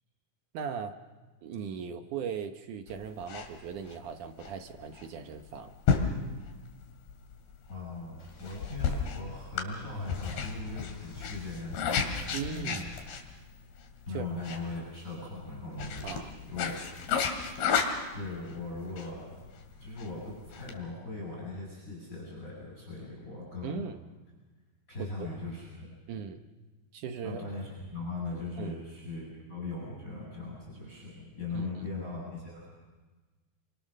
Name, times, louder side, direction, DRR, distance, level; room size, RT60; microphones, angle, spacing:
voice 1, 0.5-0.9 1.4-5.7 12.3-12.9 14.1-14.3 16.0-16.4 23.6-24.0 25.0-25.3 26.1-26.4 26.9-27.4 28.6-28.8 31.5-31.8, right 7 dB, 65° right, 7 dB, 2.2 m, -38 dB
sound 1, 2.9-20.8, left 6 dB, 80° left, 4.1 m, -34 dB
voice 2, 7.7-12.8 14.1-16.8 17.1-19.4 19.8-23.9 24.9-25.9 27.2-32.7, left 3 dB, 20° left, -4 dB, 7.4 m, -40 dB
Boom, 8.2-12.6, left 3 dB, 55° left, 6.9 m, -53 dB
28.5 x 24.5 x 6.5 m, 1.3 s
omnidirectional pair, 4.5 m